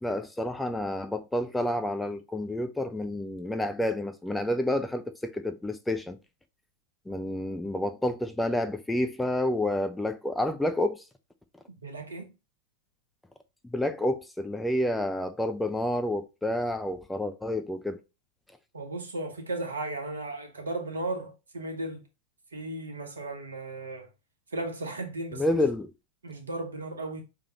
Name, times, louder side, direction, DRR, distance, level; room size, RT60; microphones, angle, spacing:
voice 1, 0.0-6.2 7.1-11.0 13.6-18.0 25.3-25.9, left 1 dB, 5° left, 0.5 m, -29 dB
voice 2, 11.8-12.3 18.7-22.0 22.5-24.1 24.5-25.6 26.2-27.2, right 2 dB, 75° right, 1.1 m, -35 dB
5.1 x 3.5 x 2.9 m
figure-of-eight pair, 90°, 0 cm